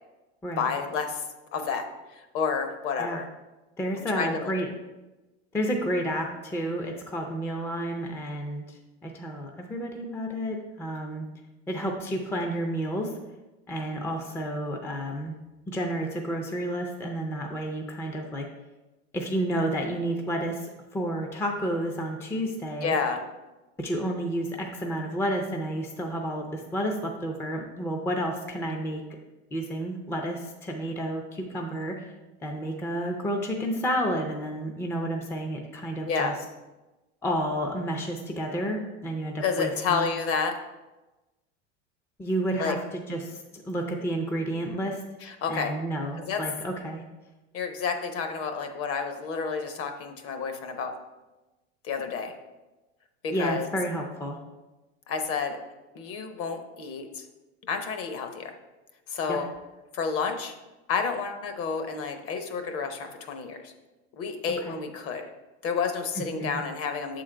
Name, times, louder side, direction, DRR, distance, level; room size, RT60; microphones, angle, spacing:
voice 1, 0.6-1.2 1.5-1.8 2.1-3.2 4.1-4.5 22.8-23.2 36.1-36.3 39.4-40.5 42.6-42.8 45.2-45.7 46.3-46.4 47.5-50.9 51.8-52.3 53.2-53.7 55.1-55.6 55.9-57.2 57.7-58.5 59.1-59.5 59.9-60.5 60.9-63.7 64.2-65.3 65.6-67.2, left 5 dB, 45° left, 6 dB, 0.8 m, -30 dB
voice 2, 3.8-4.7 5.5-11.2 11.7-13.1 13.7-15.3 15.7-18.5 19.1-23.0 23.8-29.0 29.5-32.1 32.4-36.3 37.2-40.1 42.2-45.0 45.5-47.0 53.3-54.4 59.3-59.4 64.6-64.7 66.2-66.6, right 1 dB, 10° left, 2 dB, 0.4 m, -31 dB
7.0 x 3.8 x 4.4 m, 1.1 s
supercardioid pair, 125°, 33 cm